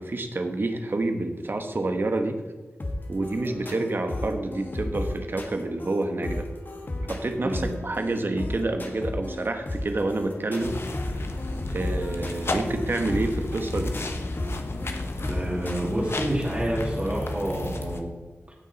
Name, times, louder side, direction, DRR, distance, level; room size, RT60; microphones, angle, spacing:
voice 1, 0.0-2.4 3.1-6.5 7.1-10.8 11.2-11.3 11.7-14.0, right 2 dB, 55° right, 6 dB, 1.2 m, -28 dB
sound 1, 2.8-15.7, left 1 dB, 50° left, 1.5 m, -34 dB
sound 2, 10.6-18.0, left 2 dB, 65° left, 1.1 m, -32 dB
voice 2, 15.2-18.1, right 1 dB, 30° right, -4 dB, 2.3 m, -29 dB
16.0 x 6.1 x 4.1 m, 1.3 s
wide cardioid pair, 80°, 4 cm